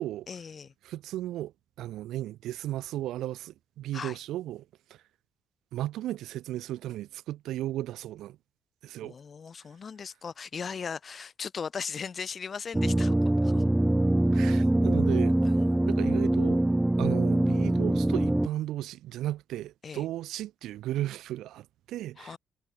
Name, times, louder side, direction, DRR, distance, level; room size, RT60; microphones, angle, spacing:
voice 1, 0.3-0.7 3.9-4.2 9.0-13.6 15.4-15.7 19.8-20.0 22.2-22.4, left 6 dB, 45° left, 7.8 m, -38 dB
voice 2, 0.8-1.5 1.8-4.6 4.9-5.0 5.7-8.4 8.8-9.2 14.3-15.4 15.9-16.6 17.0-22.4, right 14 dB, 85° right, 4.2 m, -35 dB
sound 1, 12.7-18.5, right 1 dB, 10° right, 2.0 m, -24 dB
cardioid pair, 90°, 0 cm